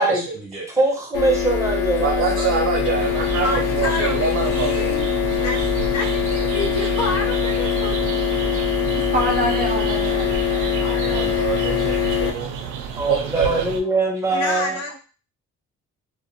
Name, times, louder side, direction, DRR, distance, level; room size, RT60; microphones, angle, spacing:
voice 1, 0.0-0.7 2.0-5.0 11.0-12.5 13.1-13.6, right 5 dB, 55° right, -1 dB, 0.8 m, -25 dB
voice 2, 0.7-2.5 13.0-14.8, right 2 dB, 10° right, 0 dB, 0.8 m, -22 dB
sound 1, 1.1-12.3, left 7 dB, 85° left, 0.6 m, -22 dB
sound 2, 3.0-13.8, right 6 dB, 80° right, 0.5 m, -32 dB
voice 3, 3.4-5.1 5.4-8.0 10.8-11.5 14.3-15.0, left 2 dB, 55° left, 2 dB, 0.8 m, -29 dB
voice 4, 9.1-10.9, right 1 dB, 30° right, 1 dB, 0.4 m, -26 dB
2.5 x 2.1 x 2.7 m, 0.36 s
cardioid pair, 90°, 30 cm